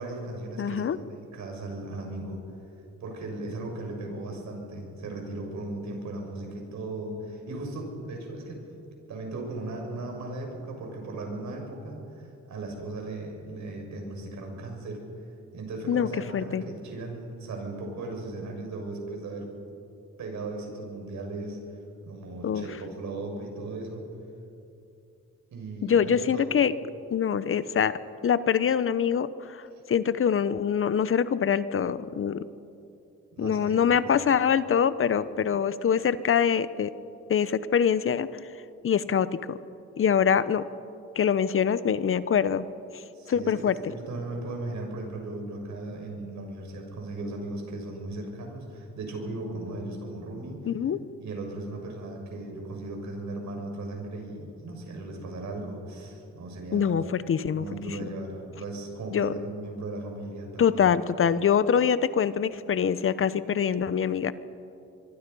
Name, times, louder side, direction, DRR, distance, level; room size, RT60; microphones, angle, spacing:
voice 1, 0.0-2.4 3.0-8.6 9.1-15.0 15.5-19.5 20.2-21.6 22.0-24.0 25.5-26.5 33.3-34.2 43.1-50.6 51.2-57.0 57.5-60.8, right 2 dB, 70° right, 1 dB, 6.4 m, -37 dB
voice 2, 0.6-1.0 15.9-16.1 16.3-16.6 22.4-22.6 25.8-26.7 27.1-29.6 29.9-32.4 33.4-36.9 37.3-38.3 38.8-39.6 40.0-40.6 41.2-42.6 43.3-43.7 50.6-51.0 56.7-58.0 59.1-59.3 60.6-64.3, left 7 dB, 45° left, 15 dB, 0.9 m, -24 dB
25.0 x 23.5 x 5.5 m, 2.7 s
cardioid pair, 90°, 30 cm